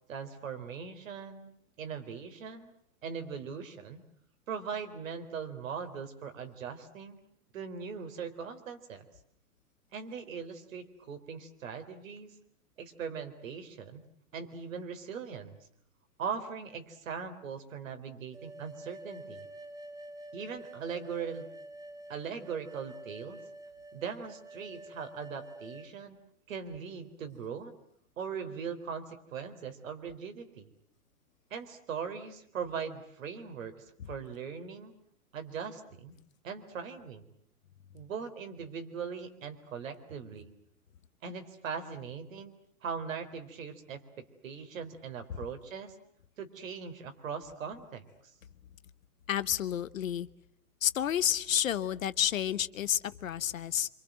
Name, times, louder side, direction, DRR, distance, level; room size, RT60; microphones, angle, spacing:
voice 1, 0.1-1.5 1.8-2.7 3.0-4.0 4.5-7.2 7.5-9.0 9.9-12.3 12.8-14.0 14.3-15.6 16.2-19.5 20.3-21.5 22.1-23.4 23.9-26.2 26.5-27.7 28.2-30.7 31.5-34.9 35.3-36.2 36.4-37.3 37.9-40.5 41.2-42.5 42.8-46.0 46.4-48.0, right 6 dB, 60° right, 7 dB, 4.1 m, -40 dB
sound 1, 18.3-25.9, right 1 dB, 10° right, 2.5 m, -48 dB
voice 2, 49.3-50.3 50.8-53.9, left 10 dB, 60° left, 15 dB, 1.2 m, -30 dB
28.0 x 25.5 x 7.8 m, 0.70 s
figure-of-eight pair, 105°, 44 cm